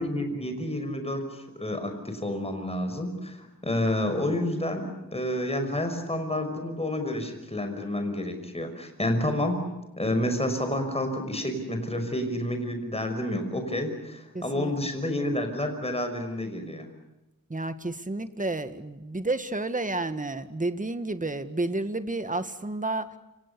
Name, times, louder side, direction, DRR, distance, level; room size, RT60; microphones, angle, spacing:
voice 1, 0.0-9.6 10.0-16.9, left 1 dB, 15° left, 6 dB, 5.7 m, -29 dB
voice 2, 14.3-14.7 17.5-23.2, right 2 dB, 20° right, 10 dB, 1.8 m, -31 dB
29.5 x 26.5 x 7.0 m, 0.97 s
wide cardioid pair, 95°, 35 cm